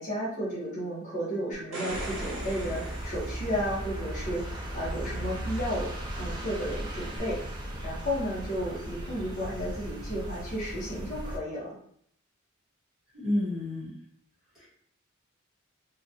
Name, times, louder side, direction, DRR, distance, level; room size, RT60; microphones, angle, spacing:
voice 1, 0.0-5.9 6.2-7.4 7.8-11.7, equal, 40° left, -9 dB, 1.0 m, -33 dB
sound 1, 1.5-4.1 7.2-7.3, right 1 dB, 80° right, 0.9 m, -40 dB
sound 2, 1.9-11.4, equal, 20° right, 0.4 m, -37 dB
voice 2, 13.1-13.9 14.5-14.7, left 1 dB, ahead, -10 dB, 1.3 m, -30 dB
2.9 x 2.2 x 2.6 m, 0.65 s
head